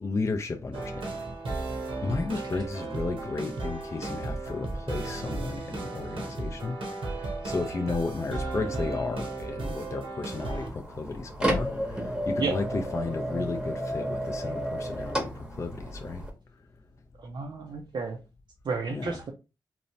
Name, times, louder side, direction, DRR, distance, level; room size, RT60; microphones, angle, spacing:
voice 1, 0.0-1.3 1.5-16.3 18.9-19.2, left 3 dB, 35° left, 0.4 m, -34 dB
sound 1, 0.7-10.7, right 2 dB, 85° right, 0.9 m, -35 dB
sound 2, 10.3-16.3, equal, 10° right, 0.8 m, -32 dB
voice 2, 17.2-18.2 18.6-19.3, right 4 dB, 60° right, 0.4 m, -32 dB
3.0 x 2.0 x 2.6 m
cardioid pair, 65°, 9 cm